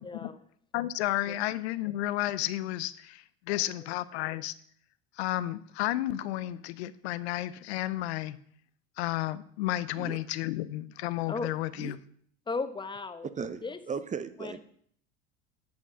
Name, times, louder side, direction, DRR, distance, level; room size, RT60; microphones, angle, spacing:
voice 1, 0.7-4.5 5.2-8.4 9.0-12.0, left 15 dB, 80° left, 16 dB, 0.6 m, -32 dB
voice 2, 12.5-13.3 13.6-13.8 14.4-14.5, left 4 dB, 15° left, 10 dB, 0.9 m, -35 dB
voice 3, 13.4-14.6, right 6 dB, 20° right, 12 dB, 0.7 m, -37 dB
10.0 x 5.4 x 6.2 m, 0.62 s
hypercardioid pair, 95°, 32 cm